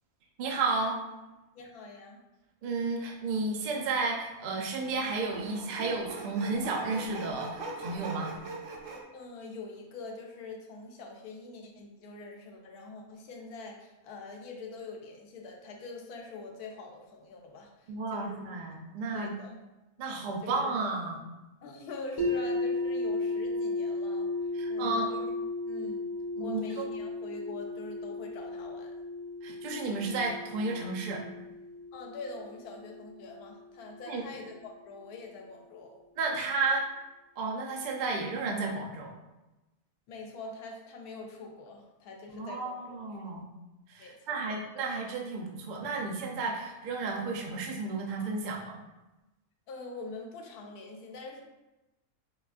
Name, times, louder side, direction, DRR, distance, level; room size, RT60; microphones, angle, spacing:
voice 1, 0.4-1.0 2.6-8.3 17.9-19.3 20.0-21.2 24.5-25.1 26.4-26.8 29.4-31.2 34.1-34.2 36.2-36.8 37.4-39.1 42.3-43.4 43.9-48.8, right 3 dB, 80° right, -1 dB, 0.4 m, -32 dB
voice 2, 1.5-2.2 9.1-18.5 19.1-19.6 20.4-20.8 21.6-25.2 25.7-26.1 26.4-29.0 31.9-36.0 36.3-36.5 40.1-43.4 44.0-44.1 49.7-51.4, left 3 dB, 85° left, 1 dB, 1.1 m, -44 dB
Sawing, 3.6-3.7 4.8-9.0, right 3 dB, 65° right, 0.9 m, -41 dB
sound 1, 22.2-34.1, left 2 dB, 25° left, 0.5 m, -35 dB
4.9 x 2.3 x 2.4 m, 1.0 s
omnidirectional pair, 1.6 m